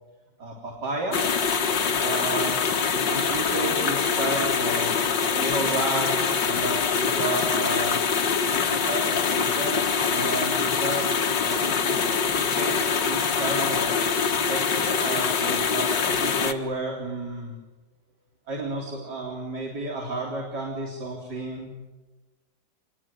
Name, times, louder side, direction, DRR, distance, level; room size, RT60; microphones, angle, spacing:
voice 1, 0.4-1.2 2.0-2.6 2.9-5.0 5.3-6.2 6.4-8.0 8.5-9.8 10.1-11.1 11.4-12.0 12.3-14.0 14.5-17.5 18.5-21.9, right 2 dB, 70° right, -1 dB, 4.5 m, -32 dB
sound 1, 1.1-16.5, left 6 dB, 85° left, 2.2 m, -24 dB
26.5 x 22.0 x 9.3 m, 1.2 s
omnidirectional pair, 1.9 m